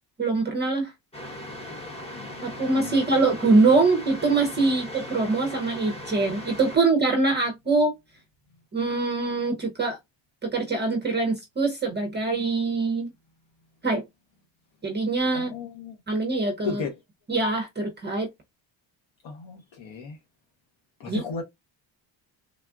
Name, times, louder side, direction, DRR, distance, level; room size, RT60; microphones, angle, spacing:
voice 1, 0.2-0.9 2.4-7.9 8.7-10.0 10.4-13.1 13.8-14.0 14.8-15.5 16.1-16.8 17.3-18.3 21.1-21.2, right 3 dB, 20° right, 0.6 m, -23 dB
sound 1, 1.1-6.8, left 1 dB, 10° left, 0.8 m, -38 dB
voice 2, 2.1-3.0 15.3-16.0 16.6-17.0 19.2-20.2 21.0-21.4, left 5 dB, 65° left, 0.9 m, -35 dB
3.5 x 2.4 x 2.2 m
cardioid pair, 135°, 48 cm